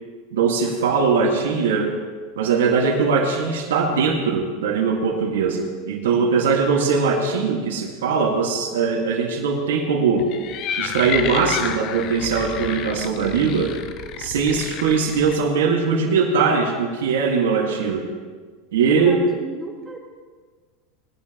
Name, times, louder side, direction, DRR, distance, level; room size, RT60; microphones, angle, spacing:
voice 1, 0.3-1.9 2.4-10.3 10.8-13.8 14.2-18.1 18.7-19.2, right 5 dB, 90° right, 0 dB, 1.8 m, -21 dB
sound 1, 10.2-15.4, left 8 dB, 45° left, 0.8 m, -30 dB
voice 2, 18.9-20.0, right 3 dB, 10° right, -4 dB, 3.5 m, -35 dB
20.0 x 11.0 x 3.0 m, 1.5 s
supercardioid pair, 125°, 0 cm